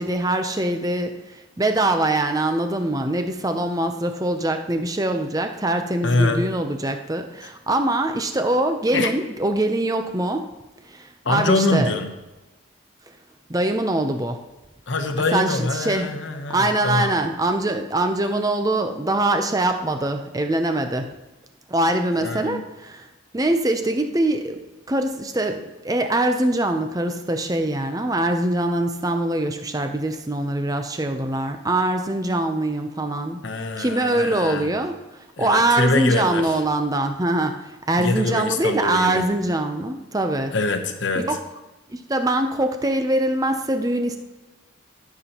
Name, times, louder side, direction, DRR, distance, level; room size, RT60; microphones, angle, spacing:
voice 1, 0.0-10.5 10.9-11.9 13.5-14.4 15.3-16.1 16.5-21.1 21.7-23.1 23.3-24.6 24.9-40.5 41.2-41.4 41.9-44.2, right 1 dB, 20° right, 6 dB, 0.6 m, -23 dB
voice 2, 6.0-6.4 8.9-9.1 11.2-12.1 14.9-17.1 22.2-22.6 33.4-34.7 35.4-36.6 37.9-39.3 40.5-41.2, left 2 dB, 65° left, 6 dB, 0.9 m, -24 dB
14.0 x 7.0 x 3.0 m, 1.1 s
head